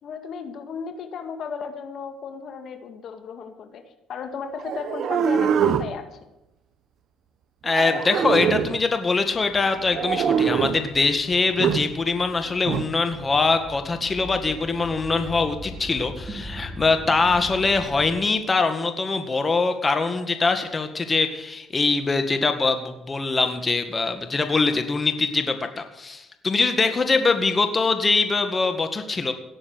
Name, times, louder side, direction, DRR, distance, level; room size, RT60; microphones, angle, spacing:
voice 1, 0.0-3.8 4.1-6.2, left 6 dB, 60° left, 7 dB, 1.8 m, -35 dB
sound 1, 4.6-5.9 7.7-8.8 9.9-10.9 11.6-11.9 12.7-12.9, right 8 dB, 60° right, 1.1 m, -23 dB
voice 2, 7.6-29.3, left 4 dB, 30° left, 7 dB, 1.8 m, -23 dB
sound 2, 9.2-18.2, equal, 25° right, 2.3 m, -41 dB
17.5 x 7.0 x 8.2 m, 0.93 s
supercardioid pair, 80°, 0 cm